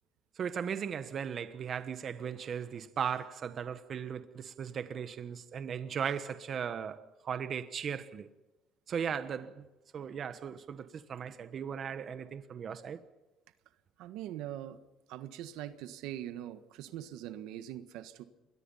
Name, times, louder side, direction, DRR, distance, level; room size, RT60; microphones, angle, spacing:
voice 1, 0.4-8.3 8.9-9.6 9.9-13.0, right 7 dB, 45° right, 1.3 m, -37 dB
voice 2, 14.0-14.8 15.1-18.2, right 12 dB, 85° right, 1.5 m, -42 dB
27.5 x 22.0 x 5.6 m
cardioid pair, 120°, 0 cm